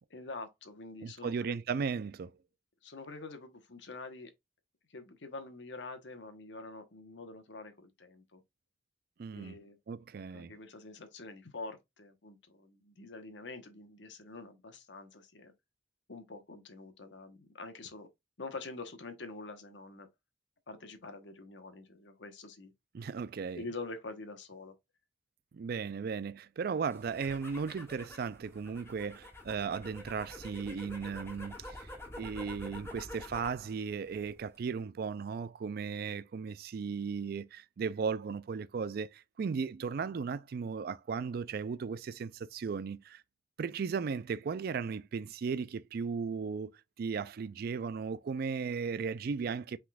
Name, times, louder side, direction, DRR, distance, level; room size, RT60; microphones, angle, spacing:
voice 1, 0.1-1.6 2.8-4.3 4.9-8.4 9.3-9.8 10.3-15.5 16.1-18.1 18.4-20.1 20.7-22.7 23.6-24.7, left 3 dB, 80° left, 1.0 m, -46 dB
voice 2, 1.0-2.3 9.2-9.6 9.9-10.5 22.9-23.7 25.5-31.9 32.1-43.2 43.6-46.7 47.0-49.8, right 5 dB, 55° right, 0.4 m, -36 dB
sound 1, 26.9-33.7 34.0-34.6, left 1 dB, 15° left, 1.6 m, -47 dB
5.9 x 3.7 x 2.3 m
head